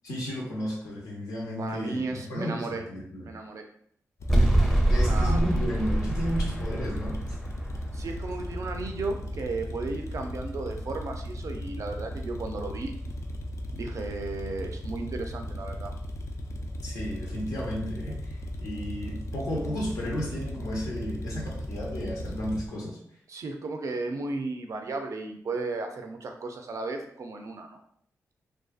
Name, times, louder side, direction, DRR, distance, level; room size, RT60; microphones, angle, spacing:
voice 1, 0.0-3.3 4.9-7.2 16.8-18.3 18.6-23.0, equal, 80° left, -3 dB, 0.8 m, -33 dB
voice 2, 1.6-2.8 3.2-3.6 5.0-5.4 7.9-12.9 13.7-15.9 23.3-27.8, right 3 dB, 60° right, 4 dB, 0.4 m, -34 dB
sound 1, 4.2-22.7, equal, 55° left, 0.4 m, -36 dB
sound 2, 4.3-9.5, right 1 dB, 5° left, 0.6 m, -26 dB
2.5 x 2.3 x 2.3 m, 0.67 s
cardioid pair, 60°, 6 cm